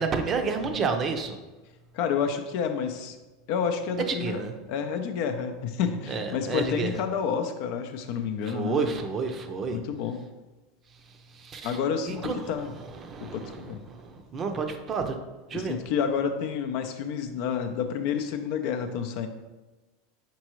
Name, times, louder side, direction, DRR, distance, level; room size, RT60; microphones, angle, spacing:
voice 1, 0.0-1.4 4.0-4.5 6.1-6.9 8.4-9.8 11.3-15.2 15.5-15.9, right 5 dB, 35° right, 6 dB, 0.5 m, -30 dB
voice 2, 1.9-3.2 3.5-4.4 4.7-9.0 9.7-10.2 11.6-12.7 13.2-13.8 15.5-19.3, left 7 dB, 60° left, 6 dB, 0.5 m, -29 dB
4.5 x 3.9 x 3.0 m, 1.2 s
hypercardioid pair, 100°, 0 cm